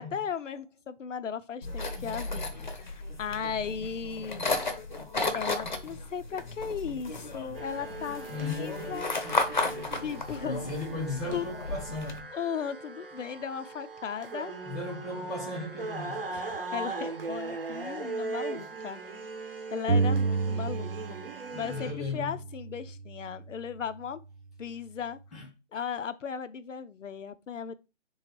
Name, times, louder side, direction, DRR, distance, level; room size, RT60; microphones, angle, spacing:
voice 1, 0.0-2.5 2.7-4.5 5.3-9.1 10.0-10.7 11.3-11.5 12.3-14.5 16.3-19.0 19.7-21.2 21.5-24.2 24.6-25.2 25.7-27.7, left 7 dB, 80° left, 0.6 m, -36 dB
sound 1, 1.6-12.2, left 3 dB, 40° left, 0.7 m, -34 dB
sound 2, 7.5-21.9, right 3 dB, 50° right, 0.8 m, -39 dB
voice 2, 8.3-8.8 10.4-12.3 14.6-16.3 21.5-22.4 25.3-25.5, left 3 dB, ahead, 0.5 m, -36 dB
sound 3, 19.9-21.4 21.6-23.4, right 4 dB, 80° right, 0.9 m, -30 dB
3.4 x 3.2 x 4.4 m
hypercardioid pair, 170°, 37 cm